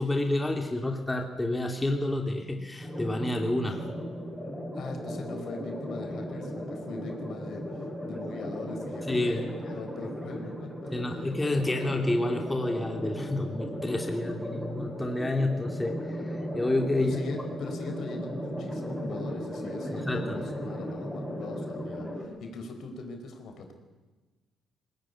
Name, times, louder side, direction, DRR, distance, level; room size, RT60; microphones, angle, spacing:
voice 1, 0.0-3.9 9.1-9.4 10.9-15.9 16.5-17.1 20.0-20.4, left 1 dB, 15° left, 3 dB, 2.9 m, -29 dB
sound 1, 2.8-22.3, equal, 5° right, 6.4 m, -36 dB
voice 2, 4.7-11.3 16.9-23.7, left 3 dB, 70° left, 5 dB, 4.8 m, -41 dB
21.0 x 19.0 x 9.8 m, 1.2 s
cardioid pair, 90°, 0 cm